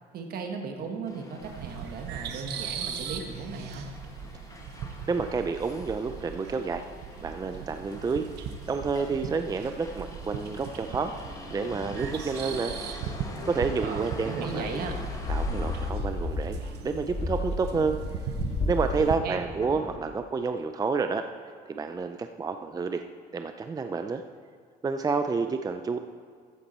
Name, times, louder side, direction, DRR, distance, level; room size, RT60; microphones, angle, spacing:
voice 1, 0.1-3.9 13.8-14.9 18.9-19.4, right 4 dB, 65° right, 4 dB, 1.7 m, -36 dB
Motor vehicle (road), 1.1-15.9, left 2 dB, 20° left, 1.5 m, -45 dB
sound 1, 1.4-19.2, right 7 dB, 80° right, 1.0 m, -39 dB
voice 2, 5.1-6.8 7.2-8.3 8.7-11.1 11.5-12.7 13.4-14.9 15.3-18.0 18.7-21.2 21.7-23.0 23.3-24.2 24.8-26.0, right 4 dB, 20° right, 7 dB, 0.5 m, -29 dB
sound 2, 14.7-20.1, left 2 dB, 40° left, 1.9 m, -33 dB
14.0 x 8.3 x 4.3 m, 2.1 s
cardioid pair, 110°, 17 cm